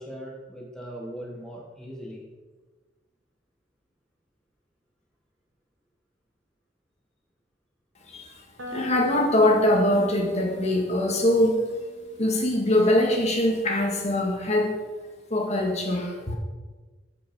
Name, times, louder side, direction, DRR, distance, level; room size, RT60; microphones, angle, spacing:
voice 1, 0.0-2.3, equal, 5° left, -2 dB, 1.3 m, -39 dB
voice 2, 8.1-8.4 8.7-11.6 12.2-14.7 15.3-16.4, left 1 dB, 40° left, 1 dB, 1.8 m, -22 dB
sound 1, 8.6-14.4, right 1 dB, 85° right, 1.8 m, -44 dB
13.5 x 5.4 x 5.1 m, 1.3 s
head